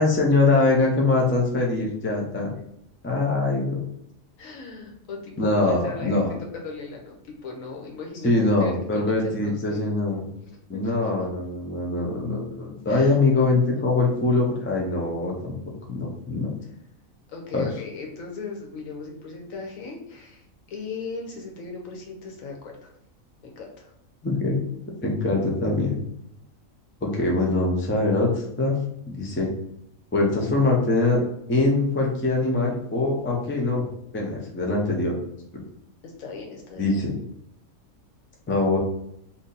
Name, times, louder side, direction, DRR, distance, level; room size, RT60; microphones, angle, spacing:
voice 1, 0.0-2.5 3.0-3.8 5.4-6.4 8.2-10.3 10.7-15.6 15.9-16.5 17.5-17.7 24.2-24.6 25.0-26.0 27.0-28.8 29.1-29.5 30.1-31.2 31.5-33.8 34.1-35.2 36.8-37.1 38.5-38.8, left 2 dB, 20° left, -1 dB, 0.3 m, -23 dB
voice 2, 4.4-6.2 6.5-8.3 8.6-9.8 10.4-11.1 12.9-13.1 17.3-22.9 23.4-23.9 36.0-37.0, left 4 dB, 75° left, 0 dB, 1.2 m, -37 dB
2.8 x 2.7 x 3.8 m, 0.76 s
omnidirectional pair, 1.4 m